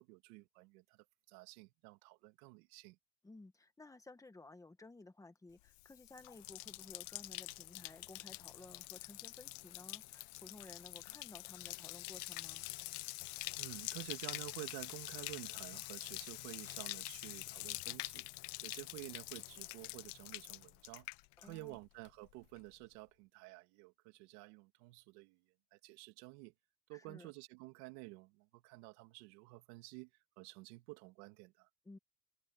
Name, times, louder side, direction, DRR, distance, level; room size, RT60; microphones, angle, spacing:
voice 1, 0.0-3.0 13.6-18.3 18.6-21.1 21.4-25.4 25.7-26.5 26.9-30.1 30.4-31.7, right 22 dB, 90° right, 2.3 m, -51 dB
voice 2, 3.2-12.7 21.4-21.8 26.9-27.3 31.8-32.0, left 2 dB, 5° left, 1.4 m, -56 dB
Bathtub (filling or washing), 5.7-21.8 22.0-22.6, left 25 dB, 65° left, 0.6 m, -46 dB
cardioid pair, 145°, 45 cm